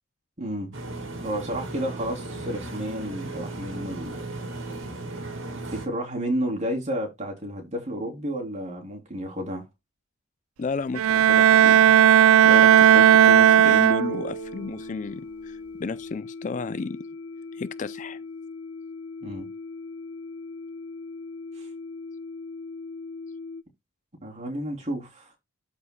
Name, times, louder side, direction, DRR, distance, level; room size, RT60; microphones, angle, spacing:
voice 1, 0.4-0.7 1.2-4.3 5.7-9.6 19.2-19.5 21.6-21.7 24.2-25.3, equal, 35° right, 3.1 m, -31 dB
sound 1, 0.7-5.9, right 2 dB, 60° right, 2.3 m, -36 dB
voice 2, 10.6-11.8 12.4-17.0 17.5-18.2, left 4 dB, 35° left, 0.4 m, -33 dB
Bowed string instrument, 11.0-14.5, right 9 dB, 80° right, 0.3 m, -16 dB
sound 2, 12.6-23.6, left 3 dB, 60° left, 1.0 m, -39 dB
13.0 x 4.7 x 2.2 m
head